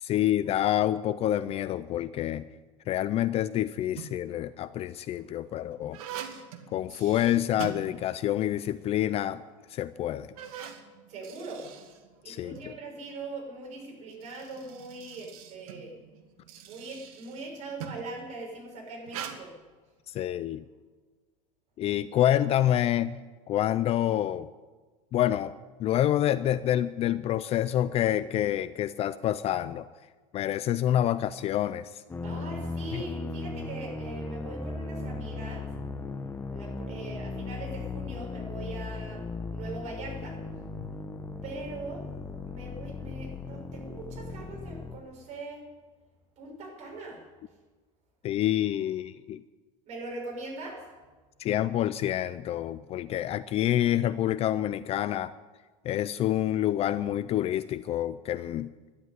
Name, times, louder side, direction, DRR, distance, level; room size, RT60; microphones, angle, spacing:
voice 1, 0.0-2.5 2.9-6.0 6.7-9.4 9.7-10.3 12.3-12.7 20.1-20.6 21.8-23.2 23.5-24.5 25.1-25.5 25.8-29.9 30.3-31.9 32.9-33.1 48.2-49.4 51.4-55.3 55.8-58.7, left 12 dB, 35° left, 15 dB, 0.5 m, -27 dB
sound 1, 3.7-4.4 5.0-8.5 8.8-8.9 9.6-9.7 10.2-12.7 13.9-18.2 19.1-19.4, right 9 dB, 85° right, 1.9 m, -43 dB
voice 2, 11.1-11.7 12.2-16.0 16.7-19.5 32.2-35.6 36.5-39.2 39.5-40.4 41.4-42.0 42.5-45.6 46.4-47.2 49.9-50.9, right 2 dB, 40° right, -1 dB, 6.7 m, -41 dB
sound 2, 32.1-45.0, left 3 dB, 15° left, 1.1 m, -37 dB
12.5 x 11.5 x 9.6 m, 1.4 s
supercardioid pair, 140°, 18 cm